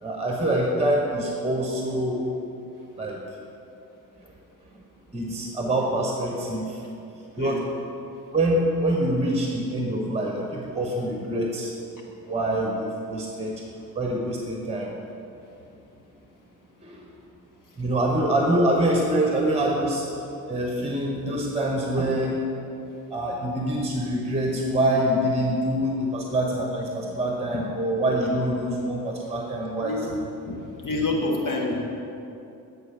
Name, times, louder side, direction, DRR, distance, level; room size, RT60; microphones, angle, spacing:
voice 1, 0.0-2.2 3.0-3.2 5.1-6.8 7.4-7.6 8.3-11.7 12.2-13.5 13.9-14.9 16.8-17.0 17.8-20.0 20.5-22.4 23.1-30.0, right 1 dB, 15° right, 0 dB, 1.2 m, -25 dB
voice 2, 30.4-31.8, left 2 dB, 45° left, 1 dB, 1.7 m, -27 dB
8.7 x 4.4 x 6.8 m, 2.7 s
hypercardioid pair, 50°, 42 cm